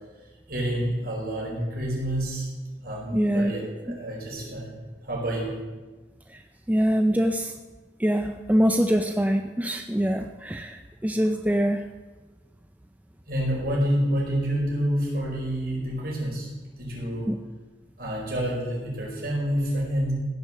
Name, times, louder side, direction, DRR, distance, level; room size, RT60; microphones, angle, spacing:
voice 1, 0.5-2.5 2.8-4.7 5.1-5.5 13.3-16.5 16.8-17.3 18.0-20.1, equal, 55° right, -3 dB, 4.9 m, -28 dB
voice 2, 3.1-3.5 3.9-4.0 6.7-7.5 8.0-11.8 17.3-17.4, equal, 10° right, 6 dB, 0.5 m, -24 dB
15.5 x 7.1 x 7.4 m, 1.3 s
head